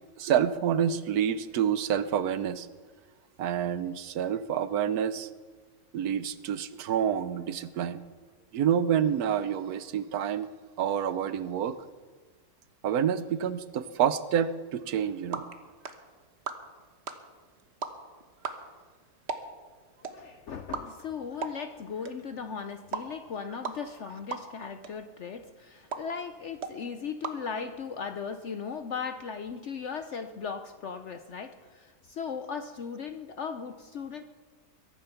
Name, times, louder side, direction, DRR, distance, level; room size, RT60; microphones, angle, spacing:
voice 1, 0.2-2.7 3.4-5.3 5.9-8.0 8.5-10.5 10.8-11.8 12.8-15.5, right 9 dB, 75° right, 14 dB, 1.2 m, -28 dB
sound 1, 14.9-28.2, right 5 dB, 45° right, 1.2 m, -42 dB
voice 2, 20.0-34.2, left 6 dB, 60° left, 8 dB, 0.9 m, -37 dB
22.5 x 10.5 x 5.8 m, 1.5 s
omnidirectional pair, 1.7 m